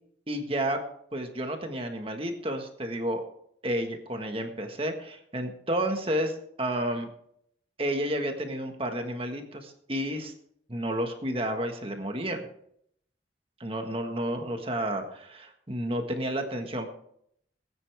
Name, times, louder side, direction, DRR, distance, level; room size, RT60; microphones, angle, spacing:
voice 1, 0.3-0.8 1.1-3.2 3.6-7.1 7.8-10.3 10.7-12.4 13.6-16.9, right 1 dB, 30° right, 4 dB, 1.6 m, -31 dB
19.0 x 9.8 x 3.5 m, 0.69 s
head